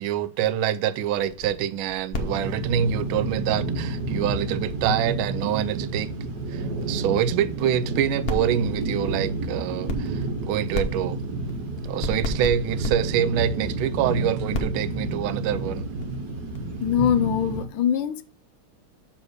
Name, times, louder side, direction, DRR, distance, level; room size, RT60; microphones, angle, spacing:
voice 1, 0.0-6.1 6.5-11.2 11.8-15.9, right 9 dB, 80° right, 1.4 m, -26 dB
sound 1, 1.1-4.0 4.3-4.4 4.6-5.9 6.1-6.2 6.5-6.8 7.2-7.3 7.5-7.8 8.1-8.9 9.7-10.4 10.7-13.5 13.9-14.1 14.5-17.4, left 1 dB, 40° left, 0.9 m, -32 dB
sound 2, 2.1-17.6, right 2 dB, 55° right, 1.4 m, -30 dB
voice 2, 16.8-18.2, left 9 dB, 75° left, 1.3 m, -23 dB
7.3 x 3.5 x 6.2 m
omnidirectional pair, 2.3 m